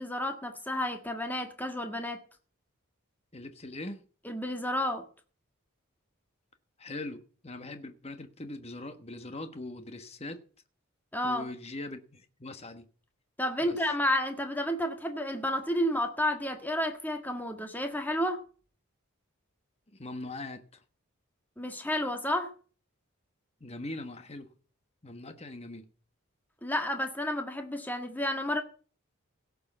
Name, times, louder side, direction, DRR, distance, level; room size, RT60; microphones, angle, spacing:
voice 1, 0.0-2.2 4.2-5.0 11.1-11.5 13.4-18.4 21.6-22.5 26.6-28.6, left 1 dB, 10° left, 1.7 m, -31 dB
voice 2, 3.3-4.0 6.8-10.4 11.2-12.8 13.6-13.8 19.9-20.6 23.6-24.5 25.0-25.9, left 2 dB, 30° left, 1.4 m, -41 dB
17.0 x 6.8 x 5.5 m
head